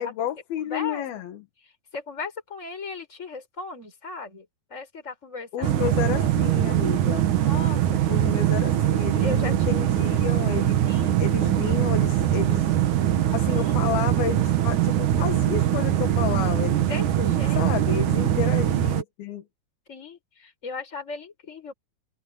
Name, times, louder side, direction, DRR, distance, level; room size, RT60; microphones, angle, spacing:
voice 1, 0.0-1.4 5.5-7.3 8.1-10.9 11.2-12.7 13.3-16.9 17.6-19.4, left 9 dB, 80° left, 3.6 m, -31 dB
voice 2, 0.6-1.3 1.6-6.4 7.3-8.0 9.2-9.9 10.8-11.2 13.2-13.8 16.8-18.1 19.9-21.7, left 4 dB, 20° left, 6.0 m, -37 dB
sound 1, 5.6-19.0, right 12 dB, 60° right, 2.6 m, -22 dB
open air
omnidirectional pair, 4.2 m